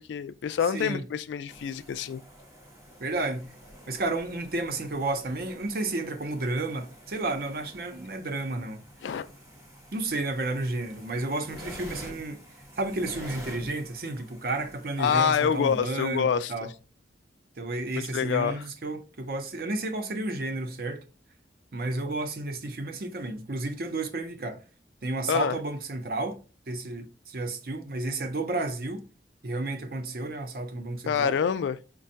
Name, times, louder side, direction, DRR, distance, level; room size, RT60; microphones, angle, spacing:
voice 1, 0.0-2.2 9.0-9.3 15.0-16.5 18.0-18.6 25.3-25.6 31.1-31.8, left 7 dB, 85° left, 0.3 m, -26 dB
voice 2, 0.7-1.0 3.0-3.5 3.9-8.8 9.9-12.4 12.8-16.7 17.6-21.0 21.7-24.6 25.0-26.4 26.7-29.0 29.4-31.4, right 2 dB, 55° right, 0.6 m, -32 dB
sound 1, 1.5-15.8, equal, 20° right, 1.0 m, -48 dB
5.1 x 2.2 x 2.7 m
head